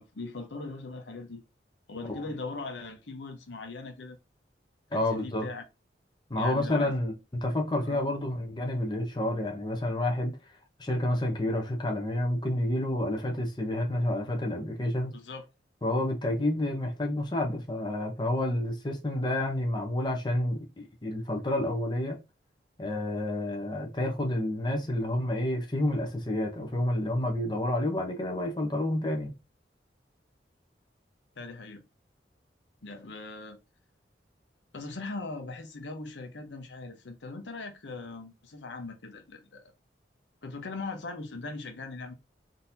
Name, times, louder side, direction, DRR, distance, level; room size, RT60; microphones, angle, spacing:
voice 1, 0.0-1.4 1.9-4.2 4.9-5.6 6.4-7.0 7.8-8.1 15.1-15.4 31.4-31.8 32.8-33.6 34.7-39.7 40.4-42.1, left 3 dB, 85° left, 0.8 m, -40 dB
voice 2, 4.9-5.5 6.3-7.1 7.4-10.4 10.8-15.1 15.8-22.2 22.8-29.3, left 1 dB, 25° left, 0.8 m, -29 dB
3.8 x 2.8 x 2.6 m
head